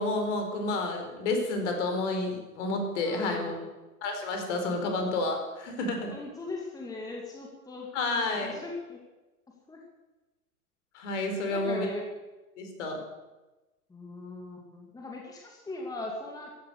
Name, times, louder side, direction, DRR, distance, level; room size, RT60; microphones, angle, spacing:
voice 1, 0.0-3.5 4.0-6.1 7.9-8.6 10.9-11.9 12.6-13.0, left 2 dB, 50° left, 4 dB, 4.8 m, -30 dB
voice 2, 3.0-3.7 4.7-4.8 6.1-7.9 8.3-9.0 9.7-9.8 11.5-12.1 13.9-16.5, left 2 dB, 10° left, -1 dB, 2.6 m, -39 dB
15.0 x 11.5 x 8.2 m, 1.1 s
figure-of-eight pair, 115°, 46 cm